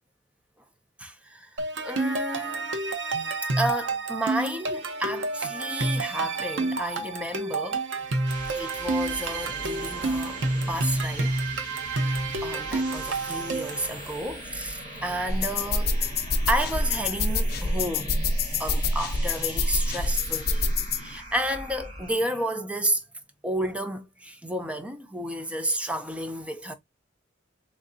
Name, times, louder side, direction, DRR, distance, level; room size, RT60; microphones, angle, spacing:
voice 1, 1.0-2.7 3.4-7.8 8.5-11.3 11.9-16.1 16.5-20.7 21.0-23.0 23.4-26.7, right 1 dB, 5° right, 0.5 m, -31 dB
sound 1, 1.6-13.9, right 2 dB, 85° right, 0.8 m, -29 dB
sound 2, 8.0-22.5, equal, 40° right, 2.2 m, -40 dB
sound 3, 15.3-21.0, left 3 dB, 55° left, 0.6 m, -26 dB
3.7 x 3.2 x 2.6 m
head